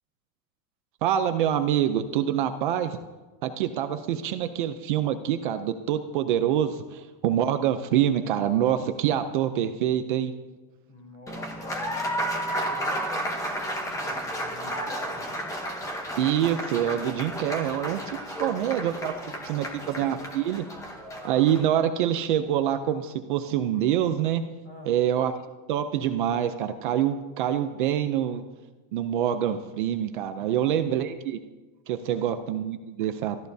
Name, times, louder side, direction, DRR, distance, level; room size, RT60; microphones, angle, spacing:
voice 1, 1.0-3.0 3.4-10.3 16.2-19.2 19.4-20.6 21.2-24.4 24.9-25.3 25.7-28.4 28.9-31.4 31.9-33.5, right 10 dB, 35° right, 8 dB, 0.4 m, -26 dB
voice 2, 10.9-15.3 18.2-18.8 19.0-19.8 24.6-25.0 30.3-30.5 32.0-32.3, left 2 dB, 25° left, 2 dB, 3.2 m, -47 dB
Applause, 11.3-21.7, equal, 5° left, 0.8 m, -32 dB
27.0 x 13.5 x 2.7 m, 1.2 s
supercardioid pair, 180°, 47 cm